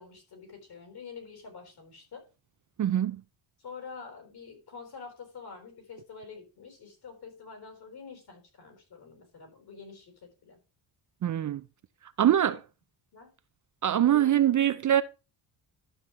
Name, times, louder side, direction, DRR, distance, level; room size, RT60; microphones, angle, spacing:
voice 1, 0.0-2.3 3.6-10.6 12.3-12.6 13.1-13.3 14.0-14.4, left 5 dB, 55° left, 4.3 m, -47 dB
voice 2, 2.8-3.2 11.2-11.6 12.2-12.6 13.8-15.0, right 11 dB, 40° right, 0.5 m, -23 dB
11.5 x 7.2 x 3.1 m
wide cardioid pair, 170°, 47 cm